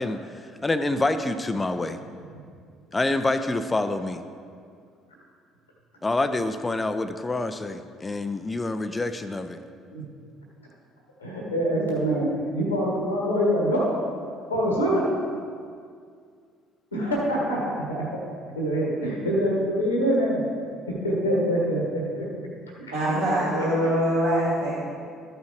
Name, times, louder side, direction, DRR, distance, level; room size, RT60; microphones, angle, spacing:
voice 1, 0.0-2.0 2.9-4.2 6.0-9.6, left 2 dB, 20° left, 10 dB, 0.6 m, -27 dB
voice 2, 11.2-13.9 14.5-15.1 16.9-18.3 18.5-20.4 21.0-22.2 22.8-22.9, equal, 85° left, -3 dB, 1.5 m, -25 dB
voice 3, 22.9-24.7, equal, 75° right, -10 dB, 1.7 m, -23 dB
12.5 x 5.6 x 4.5 m, 2.2 s
figure-of-eight pair, 55°, 0 cm